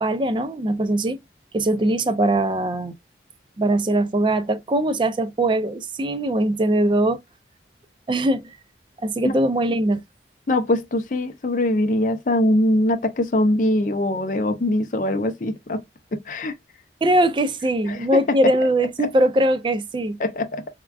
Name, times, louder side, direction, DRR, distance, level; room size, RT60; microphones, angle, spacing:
voice 1, 0.0-1.2 1.5-2.9 3.6-7.2 8.1-8.6 9.0-10.0 17.0-20.2, right 1 dB, 25° right, 0.3 m, -21 dB
voice 2, 10.5-15.8 16.1-16.5 17.9-18.2 19.0-19.1 20.2-20.7, left 1 dB, 45° left, 0.5 m, -22 dB
3.5 x 2.2 x 2.2 m
head